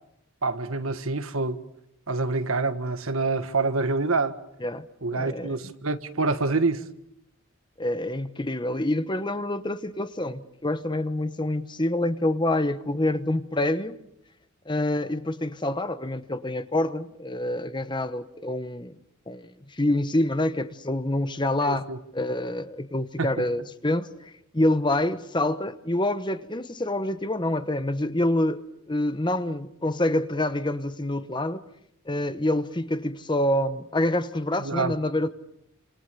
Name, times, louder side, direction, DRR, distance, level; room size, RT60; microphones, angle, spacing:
voice 1, 0.4-1.6 2.1-4.3 5.0-6.8 21.6-22.0 23.2-23.3 34.6-35.0, right 3 dB, 75° right, 1.5 m, -26 dB
voice 2, 5.1-5.6 7.8-14.0 14.7-19.0 19.3-31.6 32.0-35.3, left 1 dB, 20° left, 1.0 m, -27 dB
29.0 x 27.0 x 6.9 m
head